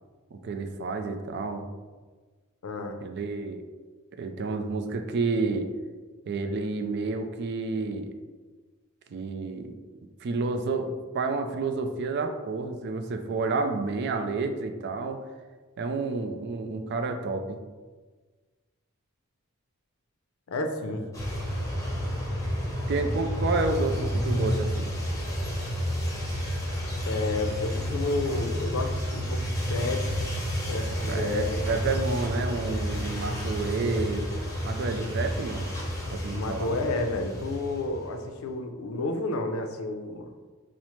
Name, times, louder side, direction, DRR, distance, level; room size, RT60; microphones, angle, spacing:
voice 1, 0.3-1.7 3.0-3.6 4.1-5.7 6.3-8.1 9.1-9.7 10.2-15.2 15.8-17.6 22.9-24.9 31.1-34.2 34.6-35.7 36.1-36.8, right 3 dB, 55° right, 6 dB, 0.4 m, -30 dB
voice 2, 2.6-3.0 20.5-21.0 27.1-30.3 30.5-31.8 36.3-40.3, left 2 dB, 90° left, 5 dB, 0.5 m, -31 dB
sound 1, 21.1-38.2, equal, 15° left, 0.9 m, -30 dB
5.5 x 2.0 x 3.0 m, 1.4 s
head